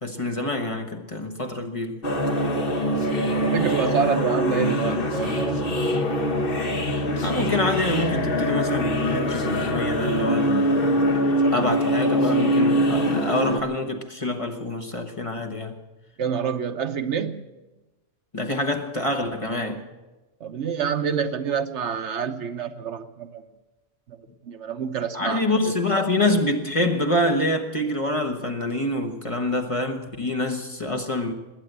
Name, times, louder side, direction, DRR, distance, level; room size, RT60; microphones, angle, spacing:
voice 1, 0.0-2.0 7.2-15.8 18.3-19.8 25.1-31.3, left 1 dB, 30° left, 1.2 m, -26 dB
sound 1, 2.0-13.6, equal, 50° left, 1.7 m, -23 dB
voice 2, 3.5-5.8 16.2-17.4 20.4-23.4 24.1-24.2 24.4-25.7, right 7 dB, 70° right, 1.2 m, -27 dB
20.5 x 8.8 x 8.0 m
omnidirectional pair, 1.2 m